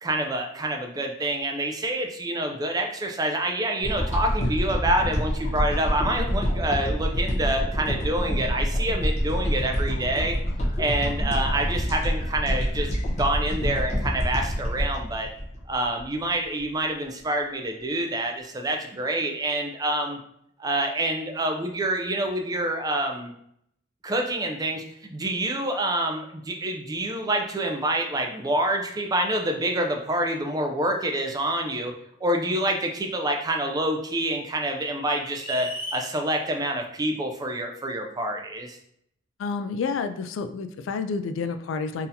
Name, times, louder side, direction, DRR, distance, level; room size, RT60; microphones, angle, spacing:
voice 1, 0.0-10.4 10.8-15.3 15.7-20.2 20.6-23.3 24.0-24.8 25.1-31.9 32.2-38.8, right 1 dB, 20° right, 3 dB, 0.4 m, -27 dB
sound 1, 3.8-16.2 16.6-16.7, equal, 35° left, 0.8 m, -27 dB
sound 2, 35.4-36.1, right 1 dB, 5° left, 0.9 m, -34 dB
voice 2, 39.4-42.1, left 5 dB, 70° left, 9 dB, 0.3 m, -29 dB
3.9 x 2.7 x 2.7 m, 0.71 s
head